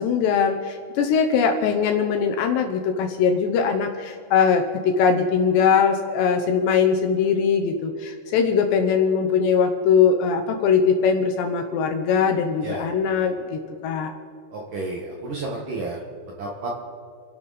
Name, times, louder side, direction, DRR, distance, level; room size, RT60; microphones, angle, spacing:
voice 1, 0.0-14.1, left 6 dB, 75° left, 5 dB, 2.7 m, -21 dB
voice 2, 14.5-16.0 16.4-16.7, right 3 dB, 60° right, -2 dB, 2.2 m, -31 dB
30.0 x 11.0 x 4.1 m, 2.3 s
omnidirectional pair, 5.7 m